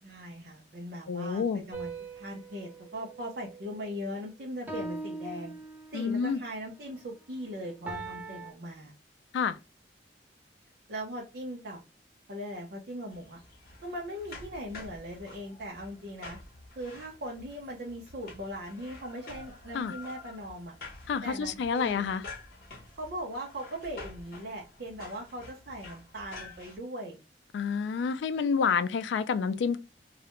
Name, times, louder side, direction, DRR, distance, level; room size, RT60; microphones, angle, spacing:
voice 1, 0.0-5.5 5.9-8.9 10.9-11.8 12.3-13.4 13.8-16.4 16.8-20.7 21.2-22.1 22.9-27.2, equal, 60° right, 0.6 m, -39 dB
voice 2, 1.1-1.6 5.9-6.4 9.3-9.6 19.7-19.9 21.1-22.2 27.5-29.8, left 6 dB, 80° left, 0.3 m, -28 dB
sound 1, 1.7-4.1 4.7-6.2 7.9-8.5, right 3 dB, 10° right, 0.5 m, -41 dB
sound 2, 13.1-26.8, left 3 dB, 55° left, 0.9 m, -48 dB
2.4 x 2.1 x 2.9 m
head